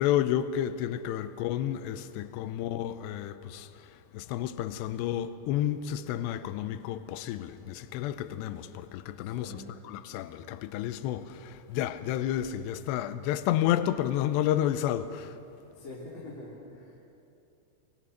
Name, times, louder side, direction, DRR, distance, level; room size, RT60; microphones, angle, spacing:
voice 1, 0.0-3.9 4.1-15.4, left 11 dB, 80° left, 2.7 m, -31 dB
voice 2, 9.1-9.8 15.7-17.0, left 1 dB, 30° left, 3.0 m, -45 dB
23.5 x 20.5 x 6.5 m
omnidirectional pair, 5.3 m